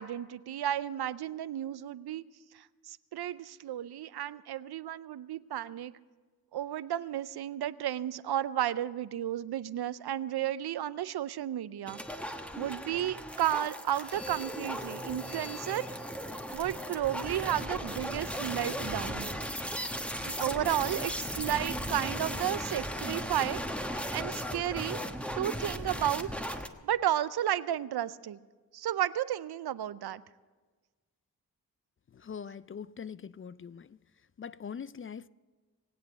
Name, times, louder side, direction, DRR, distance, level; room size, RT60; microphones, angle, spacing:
voice 1, 0.0-2.2 2.5-5.9 6.5-12.0 12.6-15.9 16.5-19.3 20.3-23.6 23.9-25.0 25.4-26.5 26.8-28.4 28.7-30.2, right 11 dB, 85° right, 0.5 m, -33 dB
sound 1, 11.9-26.7, equal, 5° left, 1.2 m, -37 dB
voice 2, 32.1-34.0 34.4-35.3, left 7 dB, 35° left, 0.4 m, -42 dB
20.5 x 8.3 x 7.7 m
cardioid pair, 45°, 37 cm